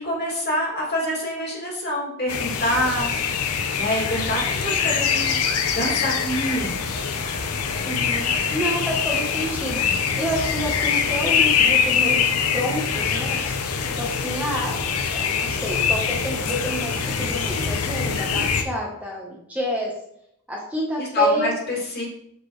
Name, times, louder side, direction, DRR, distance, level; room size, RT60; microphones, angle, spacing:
voice 1, 0.0-3.1 3.8-5.3 5.7-6.9 21.0-22.1, left 1 dB, 45° left, -4 dB, 2.5 m, -26 dB
sound 1, 2.3-18.6, left 6 dB, 85° left, 0.7 m, -24 dB
voice 2, 7.8-13.4 13.8-19.9 20.5-21.6, equal, 5° right, -3 dB, 1.0 m, -29 dB
6.5 x 4.9 x 3.1 m, 0.73 s
head